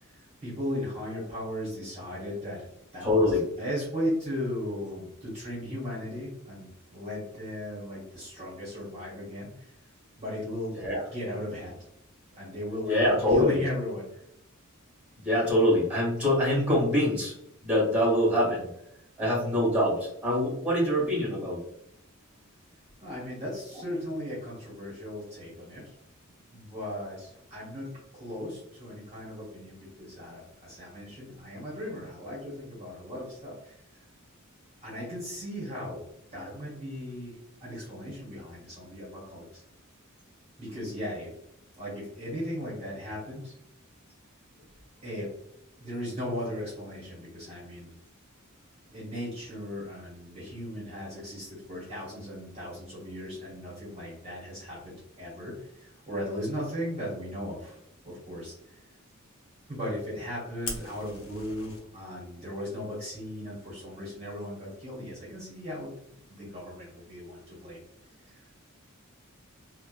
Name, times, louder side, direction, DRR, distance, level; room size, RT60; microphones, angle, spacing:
voice 1, 0.1-2.7 2.9-9.7 10.2-10.7 11.1-11.8 12.4-14.2 23.0-25.8 26.5-27.9 28.1-33.7 34.8-36.0 36.3-39.6 40.6-41.3 41.8-43.5 45.0-45.3 45.8-47.9 48.9-57.8 58.0-58.8 59.7-65.9 66.3-67.8 68.3-68.5, equal, 30° right, -7 dB, 1.0 m, -37 dB
voice 2, 3.0-3.4 10.7-11.0 12.9-13.6 15.2-17.3 17.6-18.7 19.2-21.6, left 1 dB, 5° right, -5 dB, 1.3 m, -24 dB
Fire, 60.6-61.8, left 3 dB, 65° left, 0.7 m, -39 dB
2.9 x 2.1 x 2.3 m, 0.77 s
head